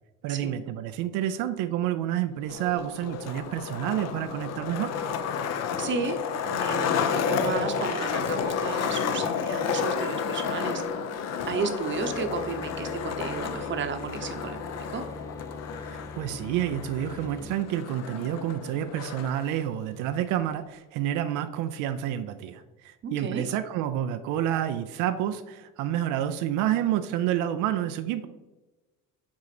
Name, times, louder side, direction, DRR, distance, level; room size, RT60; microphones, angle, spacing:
voice 1, 0.2-4.9 15.8-28.3, right 11 dB, 85° right, 9 dB, 0.5 m, -29 dB
Skateboard, 2.4-19.4, left 6 dB, 60° left, 0.8 m, -31 dB
voice 2, 5.8-6.2 6.4-10.8 11.5-15.0 23.0-23.5, right 5 dB, 40° right, 8 dB, 0.9 m, -33 dB
sound 1, 11.4-17.6, left 3 dB, 10° left, 0.4 m, -43 dB
6.1 x 3.8 x 5.9 m, 1.1 s
cardioid pair, 120°, 30 cm